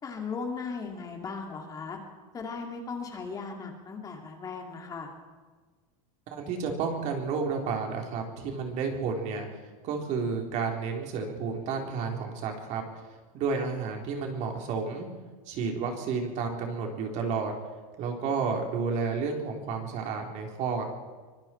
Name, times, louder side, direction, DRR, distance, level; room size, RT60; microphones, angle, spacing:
voice 1, 0.0-2.0 2.3-5.1, left 4 dB, 20° left, 2 dB, 2.5 m, -37 dB
voice 2, 6.3-9.5 9.8-12.8 13.3-15.1 15.5-17.5 18.0-20.8, right 5 dB, 45° right, 2 dB, 3.8 m, -31 dB
24.5 x 23.5 x 4.5 m, 1.4 s
supercardioid pair, 155°, 18 cm